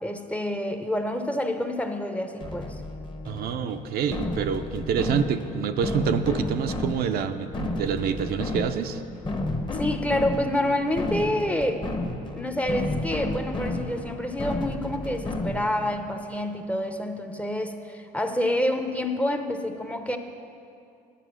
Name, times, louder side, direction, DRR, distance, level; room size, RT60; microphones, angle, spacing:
voice 1, 0.0-2.8 9.7-11.9 12.4-20.2, left 1 dB, 10° left, 6 dB, 0.7 m, -28 dB
sound 1, 2.4-15.9, left 2 dB, 30° left, 1.0 m, -32 dB
voice 2, 3.3-9.0, right 7 dB, 65° right, 8 dB, 0.5 m, -27 dB
10.0 x 8.2 x 6.2 m, 2.6 s
cardioid pair, 110°, 17 cm